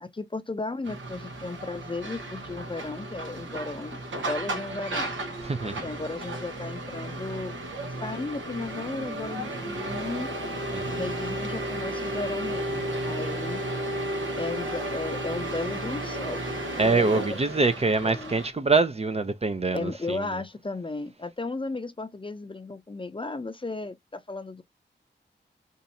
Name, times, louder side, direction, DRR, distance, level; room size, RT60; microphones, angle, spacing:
voice 1, 0.0-5.1 5.8-7.6 7.8-10.3 11.0-13.6 14.4-16.5 16.8-17.2 18.0-18.4 19.7-24.6, left 3 dB, 25° left, 0.6 m, -35 dB
sound 1, 0.8-18.5, right 1 dB, 80° right, 1.0 m, -33 dB
voice 2, 5.4-5.8 10.7-11.1 16.8-20.3, right 3 dB, 30° right, 0.5 m, -25 dB
2.7 x 2.3 x 4.1 m
cardioid pair, 50°, 20 cm